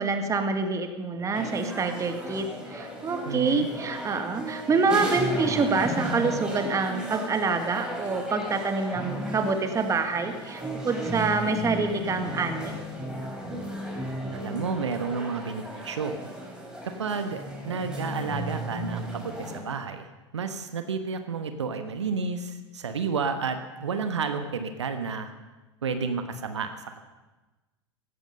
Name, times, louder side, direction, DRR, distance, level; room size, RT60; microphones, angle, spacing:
voice 1, 0.0-12.7, right 4 dB, 20° right, 7 dB, 1.7 m, -26 dB
sound 1, 1.3-19.6, equal, 5° right, 4.2 m, -35 dB
voice 2, 3.2-3.7 14.3-16.1 16.8-20.1 20.3-25.3 25.8-27.0, right 5 dB, 75° right, 8 dB, 1.2 m, -31 dB
16.5 x 13.5 x 5.4 m, 1.2 s
figure-of-eight pair, 85°, 15 cm